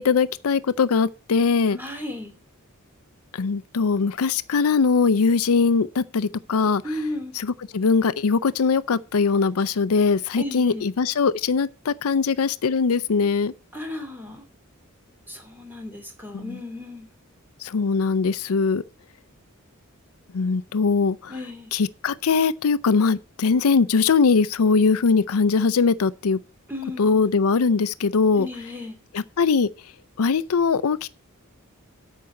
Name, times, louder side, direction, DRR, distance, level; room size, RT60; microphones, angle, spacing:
voice 1, 0.0-1.8 3.4-6.8 7.7-13.5 17.7-18.8 20.3-21.3 21.7-26.4 27.0-28.5 29.4-29.7 30.2-31.1, left 5 dB, 85° left, 0.5 m, -21 dB
voice 2, 1.7-2.3 6.8-7.3 10.4-10.9 13.7-14.4 15.3-17.1 21.3-21.7 26.7-27.2 28.3-29.0, left 1 dB, 10° right, 2.7 m, -34 dB
8.6 x 5.5 x 7.8 m
head